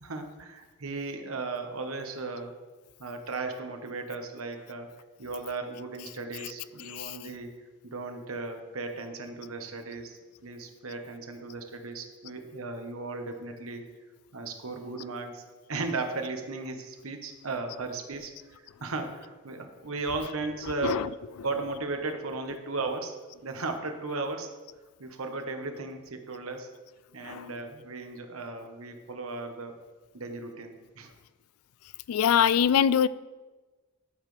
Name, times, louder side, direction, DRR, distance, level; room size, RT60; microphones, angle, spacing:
voice 1, 0.0-2.5 3.0-4.9 5.2-7.5 7.8-13.8 14.3-15.4 15.7-18.3 18.8-21.0 21.4-23.2 23.4-24.5 25.0-26.7 27.1-29.7 30.1-31.1, right 3 dB, 70° right, 1.2 m, -36 dB
voice 2, 6.9-7.2 20.8-21.1 27.2-27.5 32.1-33.1, left 8 dB, 85° left, 0.3 m, -23 dB
13.0 x 7.4 x 3.3 m
head